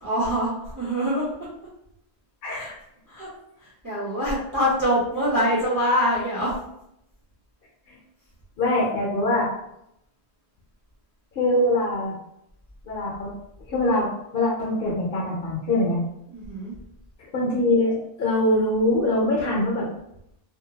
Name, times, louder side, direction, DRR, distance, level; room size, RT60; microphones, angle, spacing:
voice 1, 0.0-1.5 2.5-2.7 3.1-3.3 3.6-6.5 16.3-16.7, equal, 20° right, -8 dB, 0.7 m, -25 dB
voice 2, 2.4-2.8 7.9-8.0 8.6-9.5 11.3-12.2 12.8-13.3 13.7-16.0 17.3-19.9, left 1 dB, 55° left, -4 dB, 0.8 m, -23 dB
2.7 x 2.2 x 2.8 m, 0.80 s
omnidirectional pair, 1.2 m